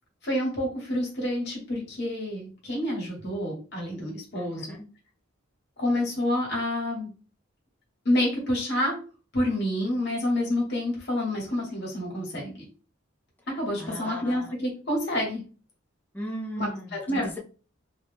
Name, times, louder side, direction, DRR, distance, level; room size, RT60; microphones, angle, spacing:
voice 1, 0.2-4.7 5.8-7.1 8.0-9.0 9.3-12.7 13.5-15.4 16.6-17.3, left 1 dB, 55° left, -3 dB, 1.4 m, -28 dB
voice 2, 4.3-4.9 13.8-14.5 16.1-17.4, equal, 10° left, -1 dB, 0.5 m, -37 dB
2.6 x 2.3 x 3.4 m, 0.36 s
head